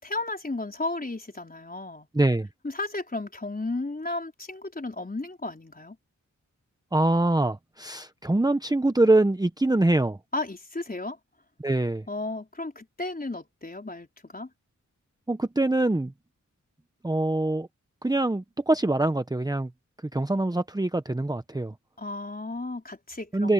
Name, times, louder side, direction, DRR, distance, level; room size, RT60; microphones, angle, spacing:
voice 1, 0.0-2.1 2.6-6.0 10.3-11.2 12.1-14.5 22.0-23.5, left 2 dB, 30° left, 4.4 m, -34 dB
voice 2, 2.1-2.5 6.9-10.2 11.6-12.1 15.3-16.1 17.0-17.7 18.0-19.7 20.0-21.7 23.3-23.5, right 2 dB, 10° right, 1.0 m, -24 dB
cardioid pair, 60°, 32 cm